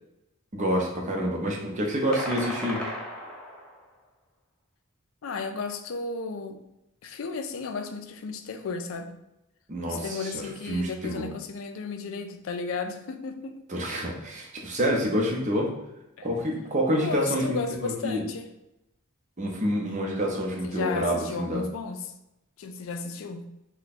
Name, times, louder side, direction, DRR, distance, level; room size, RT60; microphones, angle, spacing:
voice 1, 0.5-2.8 9.7-10.4 10.7-11.3 13.7-15.7 16.2-18.2 19.4-21.6, equal, 35° right, -1 dB, 0.7 m, -28 dB
sound 1, 2.1-3.8, left 1 dB, 5° left, 0.6 m, -35 dB
voice 2, 5.2-6.6 7.0-9.1 9.9-13.6 16.2-16.3 16.9-18.5 20.6-22.1 22.6-23.5, left 4 dB, 65° left, 7 dB, 0.4 m, -34 dB
3.3 x 2.2 x 4.1 m, 0.89 s
head